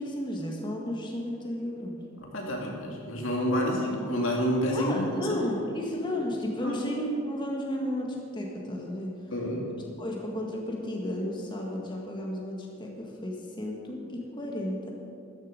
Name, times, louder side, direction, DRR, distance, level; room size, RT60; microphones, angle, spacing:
voice 1, 0.0-2.0 4.7-9.3 9.8-14.9, left 1 dB, 20° left, -1 dB, 1.8 m, -33 dB
voice 2, 2.2-5.4 6.6-6.9 9.3-9.7, equal, 65° left, -1 dB, 2.5 m, -29 dB
13.5 x 11.0 x 5.3 m, 2.4 s
head